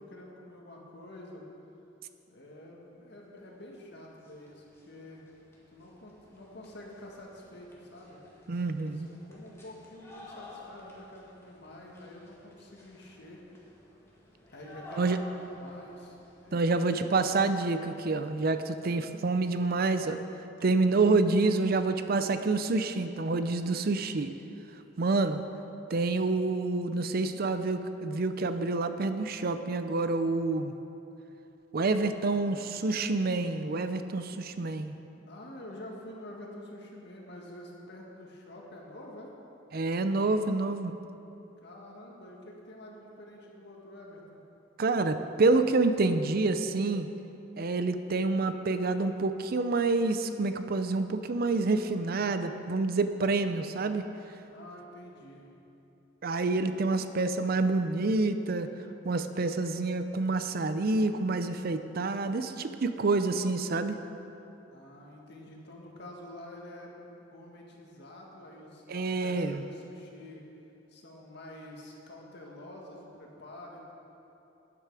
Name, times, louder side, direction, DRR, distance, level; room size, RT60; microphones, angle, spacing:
voice 1, 0.0-1.5 2.3-5.2 5.7-8.2 8.9-13.4 14.5-17.4 32.3-32.7 35.3-39.3 41.6-44.4 54.5-55.5 64.7-70.5 70.9-73.9, left 1 dB, 65° left, -1 dB, 1.9 m, -48 dB
sound 1, 3.7-3.8 4.0-16.7, left 1 dB, 15° left, 1.8 m, -52 dB
voice 2, 8.5-9.1 15.0-15.2 16.5-20.2 20.6-24.3 25.0-25.4 25.9-30.7 31.7-34.9 39.7-40.9 44.8-47.1 47.6-54.0 56.2-58.7 59.0-64.0 68.9-69.6, right 3 dB, 55° right, 10 dB, 0.5 m, -28 dB
12.5 x 9.7 x 4.8 m, 2.9 s
head